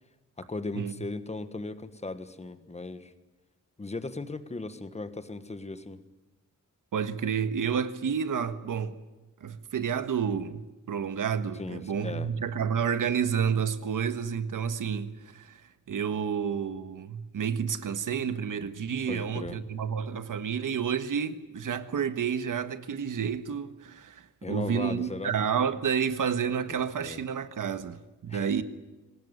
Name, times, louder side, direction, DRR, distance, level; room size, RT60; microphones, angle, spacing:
voice 1, 0.4-3.1 3.8-6.0 11.6-12.3 19.1-19.6 24.4-25.3 26.7-27.2 28.3-28.6, left 3 dB, 20° left, 1.4 m, -37 dB
voice 2, 6.9-9.0 9.4-15.6 15.9-28.6, right 7 dB, 90° right, 1.6 m, -30 dB
24.5 x 19.5 x 9.7 m
wide cardioid pair, 175°, 31 cm